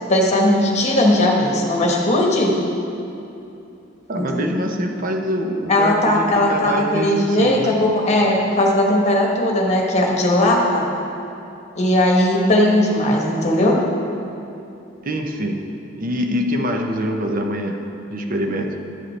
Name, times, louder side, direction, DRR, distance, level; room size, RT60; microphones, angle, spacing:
voice 1, 0.1-2.6 4.1-4.4 5.7-10.9 11.7-13.8, left 1 dB, 35° left, -1 dB, 1.2 m, -18 dB
voice 2, 4.1-7.8 15.0-15.7 16.0-17.8 18.1-18.8, equal, 45° right, 3 dB, 0.7 m, -24 dB
11.5 x 7.6 x 3.3 m, 2.8 s
head